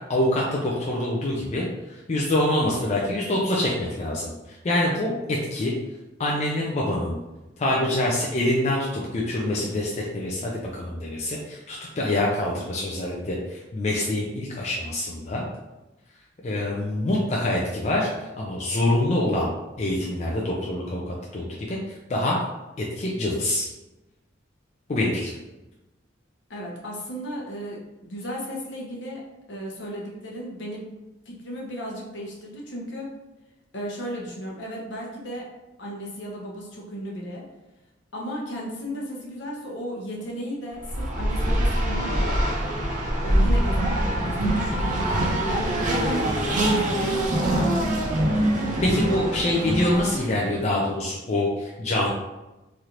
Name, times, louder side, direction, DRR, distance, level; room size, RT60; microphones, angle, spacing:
voice 1, 0.0-5.7 6.2-7.2 7.6-15.4 16.4-19.5 19.8-22.4 22.8-23.7 24.9-25.3 48.8-52.1, left 1 dB, 35° left, -4 dB, 0.4 m, -25 dB
voice 2, 26.5-29.2 29.5-30.9 31.3-33.1 33.7-35.5 35.8-37.4 38.1-42.5 43.2-45.1 45.4-47.7, equal, 65° left, -2 dB, 0.8 m, -35 dB
Race car auto racing, 40.8-50.5, right 1 dB, 40° right, 0.5 m, -24 dB
3.2 x 2.5 x 2.8 m, 1.0 s
head